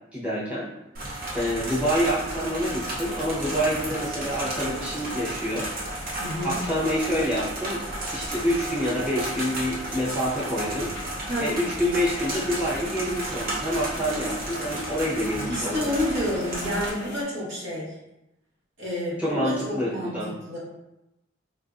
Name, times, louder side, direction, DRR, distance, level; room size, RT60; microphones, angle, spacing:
voice 1, 0.1-0.7 1.3-5.7 6.4-7.8 8.1-10.9 11.4-15.9 19.2-20.3, equal, 5° right, -9 dB, 0.8 m, -27 dB
sound 1, 0.9-16.9, right 1 dB, 50° right, 0.7 m, -33 dB
sound 2, 2.1-17.2, left 2 dB, 65° left, 0.5 m, -43 dB
voice 2, 6.2-6.6 11.3-11.5 15.5-17.9 18.8-20.6, left 1 dB, 70° right, -7 dB, 1.3 m, -29 dB
3.6 x 2.5 x 2.4 m, 0.93 s
head